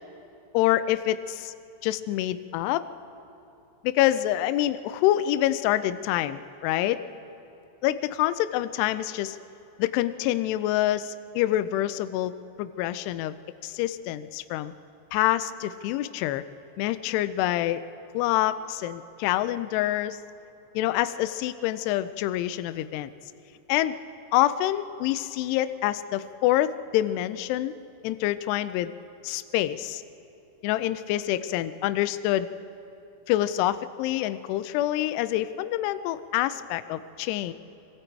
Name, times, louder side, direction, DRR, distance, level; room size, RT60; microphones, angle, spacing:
voice 1, 0.5-1.5 1.8-2.9 3.8-7.0 7.8-9.4 9.8-12.3 12.6-13.3 13.6-14.7 15.1-16.4 16.8-17.8 18.1-20.2 20.8-23.1 23.7-24.0 24.3-27.7 28.0-28.9 29.2-30.0 30.6-32.5 33.3-37.5, left 14 dB, 80° left, 12 dB, 2.4 m, -26 dB
25.5 x 24.5 x 4.6 m, 2.9 s
omnidirectional pair, 5.3 m